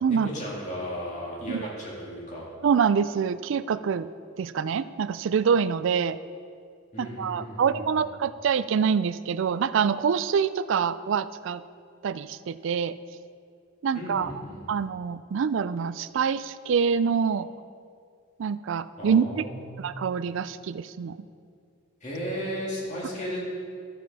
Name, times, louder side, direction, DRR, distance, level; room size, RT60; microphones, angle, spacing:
voice 1, 0.1-2.5 6.9-8.0 13.9-14.8 19.0-19.8 22.0-23.4, equal, 35° left, -5 dB, 2.2 m, -35 dB
voice 2, 2.6-4.1 4.4-6.2 7.0-11.6 12.0-13.0 13.8-14.3 14.7-17.5 18.4-19.4 19.8-21.2, right 6 dB, 65° right, 15 dB, 0.3 m, -25 dB
13.5 x 7.3 x 4.1 m, 2.3 s
head